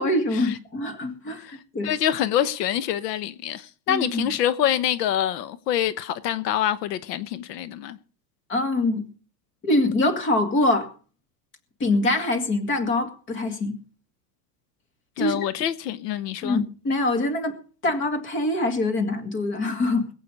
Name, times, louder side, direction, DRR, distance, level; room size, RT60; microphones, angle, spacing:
voice 1, 0.0-1.9 3.9-4.3 8.5-9.0 9.6-10.9 11.8-13.8 15.2-15.5 16.4-20.1, left 2 dB, 25° left, 2.1 m, -24 dB
voice 2, 1.8-8.0 15.2-16.6, left 10 dB, 85° left, 1.1 m, -26 dB
21.0 x 8.5 x 5.3 m
supercardioid pair, 160°, 47 cm